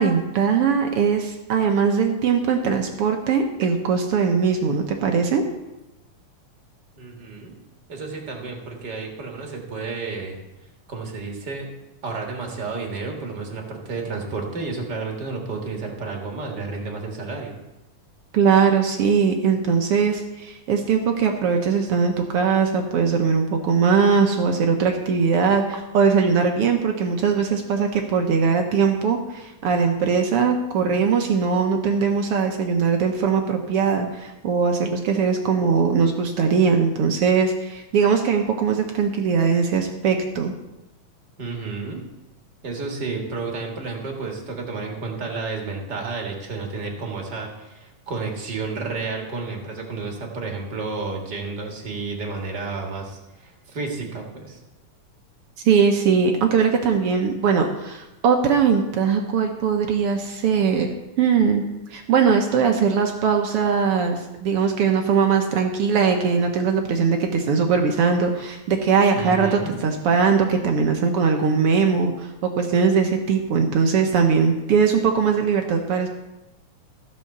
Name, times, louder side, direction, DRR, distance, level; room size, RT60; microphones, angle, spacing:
voice 1, 0.0-5.4 18.3-40.5 55.6-60.9 61.2-61.6 61.9-76.1, right 6 dB, 70° right, 4 dB, 1.4 m, -20 dB
voice 2, 7.0-7.5 7.9-10.4 10.9-11.7 12.0-17.6 41.4-42.0 42.6-54.6 69.1-69.8, right 3 dB, 40° right, 1 dB, 1.9 m, -31 dB
15.0 x 5.7 x 6.6 m, 0.97 s
omnidirectional pair, 3.7 m